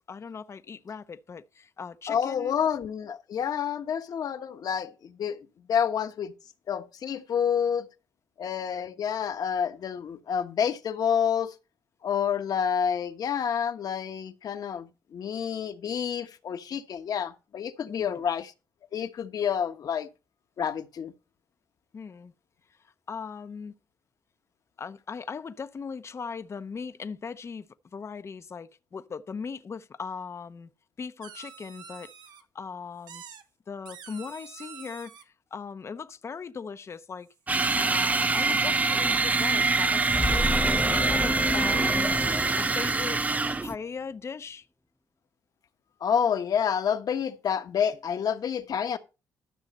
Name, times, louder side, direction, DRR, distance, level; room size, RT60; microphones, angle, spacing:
voice 1, 0.1-2.6 17.9-18.1 21.9-22.3 22.8-23.7 24.8-30.7 31.0-32.1 32.5-33.2 33.7-37.3 37.7-40.1 40.5-42.2 42.5-44.7, left 5 dB, 40° left, 0.8 m, -39 dB
voice 2, 2.1-5.4 5.7-6.3 6.7-7.9 8.4-11.5 12.0-18.5 18.9-20.1 20.6-21.1 46.0-49.0, left 8 dB, 60° left, 1.3 m, -28 dB
sound 1, 31.2-32.4 33.1-33.4 33.8-35.2 37.3-37.4 37.7-38.2, right 8 dB, 80° right, 1.3 m, -46 dB
sound 2, 37.5-43.7, right 3 dB, 20° right, 0.4 m, -25 dB
sound 3, 40.1-43.6, left 1 dB, 5° left, 0.7 m, -30 dB
12.5 x 6.4 x 4.3 m
cardioid pair, 90°, 7 cm